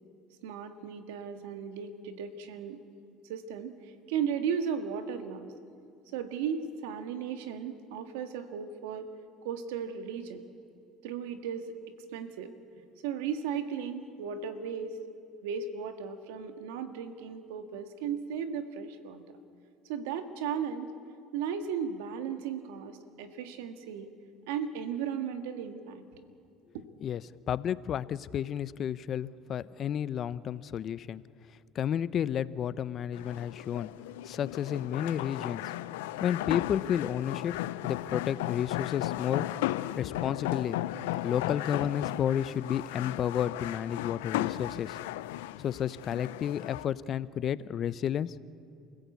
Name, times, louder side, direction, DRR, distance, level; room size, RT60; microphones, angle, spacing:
voice 1, 0.4-2.8 3.3-5.5 6.1-9.1 9.4-10.4 11.0-11.7 12.1-12.5 13.0-15.0 15.4-19.2 19.9-20.9 21.3-24.1 24.5-26.0 26.7-26.8, right 7 dB, 85° right, 8 dB, 1.7 m, -35 dB
voice 2, 27.5-31.2 31.7-33.9 34.2-35.6 36.2-37.6 37.8-39.5 40.0-40.8 41.2-45.0 45.6-48.4, left 9 dB, 50° left, 17 dB, 0.6 m, -31 dB
sound 1, 33.1-46.9, left 15 dB, 90° left, 0.5 m, -35 dB
28.5 x 16.0 x 8.4 m, 2.4 s
supercardioid pair, 95°, 0 cm